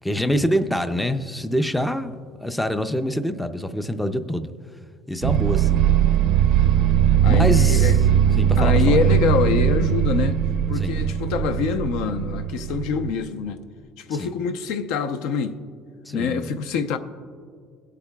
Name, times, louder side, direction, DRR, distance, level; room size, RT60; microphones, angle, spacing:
voice 1, 0.0-2.1 2.4-4.5 5.1-5.9 7.2-7.9 8.4-9.0 10.8-11.1 14.2-14.3 16.1-16.5, equal, 5° left, 0.4 m, -25 dB
sound 1, 5.2-13.1, right 9 dB, 70° right, 0.5 m, -19 dB
voice 2, 7.2-7.9 8.6-10.4 10.7-13.6 14.0-15.6 16.1-17.0, left 6 dB, 80° left, 0.6 m, -25 dB
22.0 x 8.3 x 2.3 m
cardioid pair, 160°, 0 cm